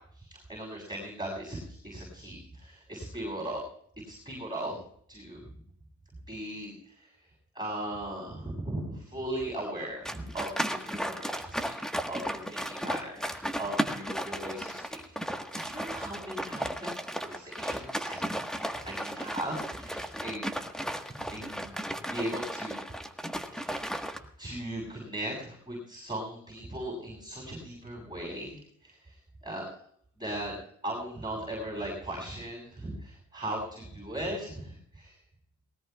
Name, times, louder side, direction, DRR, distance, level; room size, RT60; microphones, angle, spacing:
voice 1, 0.0-3.6 4.1-4.8 5.1-5.4 6.3-15.0 15.5-20.5 21.0-21.8 22.1-22.8 23.6-24.1 24.4-29.7 30.2-30.6 30.8-35.2, right 1 dB, 15° right, -2 dB, 7.3 m, -38 dB
sound 1, 10.0-24.2, equal, ahead, 1.4 m, -35 dB
20.0 x 18.0 x 2.4 m, 0.64 s
cardioid pair, 90°, 30 cm